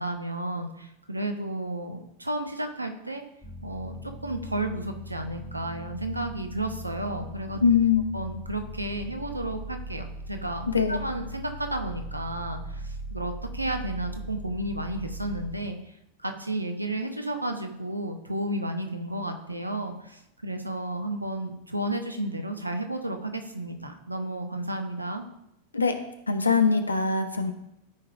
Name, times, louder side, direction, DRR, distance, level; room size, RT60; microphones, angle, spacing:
voice 1, 0.0-3.2 3.6-7.6 8.1-15.9 16.2-25.2, right 1 dB, 85° right, 6 dB, 0.8 m, -32 dB
sound 1, 3.4-15.6, equal, 20° left, 2.8 m, -39 dB
voice 2, 7.6-8.1 10.7-11.0 25.7-25.9 26.3-27.5, left 5 dB, 80° left, 8 dB, 0.7 m, -22 dB
12.5 x 4.8 x 2.6 m, 0.82 s
figure-of-eight pair, 90°, 0 cm